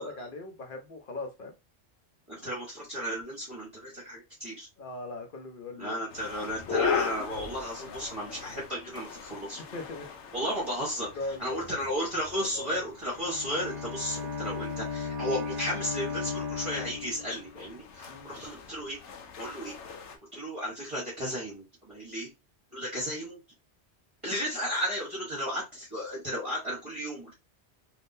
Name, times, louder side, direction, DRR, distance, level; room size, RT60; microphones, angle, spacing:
voice 1, 0.0-1.5 4.8-6.0 9.7-10.3 11.1-11.7 12.4-12.8 18.1-18.5, left 2 dB, 55° left, 4 dB, 0.8 m, -40 dB
voice 2, 2.3-4.7 5.8-9.6 10.3-11.1 11.4-19.0 19.4-19.7 20.3-22.3 22.7-23.4 24.2-27.3, equal, 30° right, -5 dB, 1.3 m, -34 dB
sound 1, 6.1-20.2, left 6 dB, 85° left, 1.0 m, -39 dB
Bowed string instrument, 12.9-17.7, left 5 dB, 20° left, 1.4 m, -36 dB
3.5 x 2.7 x 2.6 m, 0.24 s
omnidirectional pair, 1.2 m